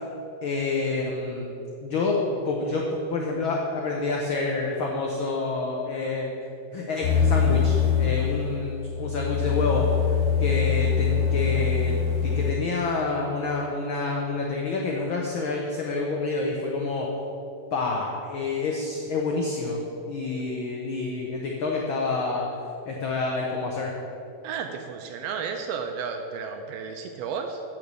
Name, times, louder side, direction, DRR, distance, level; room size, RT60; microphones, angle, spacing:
voice 1, 0.4-1.5 1.8-6.3 6.7-9.9 10.4-11.9 12.2-17.1 17.7-22.5 22.9-23.9, left 3 dB, 90° left, -1 dB, 1.1 m, -28 dB
sound 1, 7.0-12.5, left 7 dB, 60° left, 1.7 m, -24 dB
voice 2, 24.4-27.6, right 6 dB, 75° right, 5 dB, 1.6 m, -33 dB
7.6 x 6.0 x 6.7 m, 2.8 s
omnidirectional pair, 3.3 m